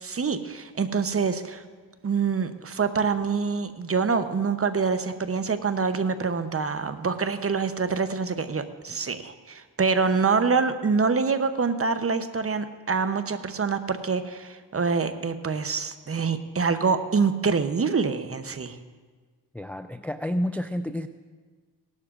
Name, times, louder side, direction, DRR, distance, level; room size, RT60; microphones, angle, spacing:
voice 1, 0.0-1.6 2.0-18.8, right 5 dB, 30° right, 10 dB, 0.8 m, -26 dB
voice 2, 19.5-21.1, equal, 5° left, 9 dB, 0.3 m, -29 dB
18.0 x 12.0 x 2.5 m, 1.5 s
cardioid pair, 55°, 43 cm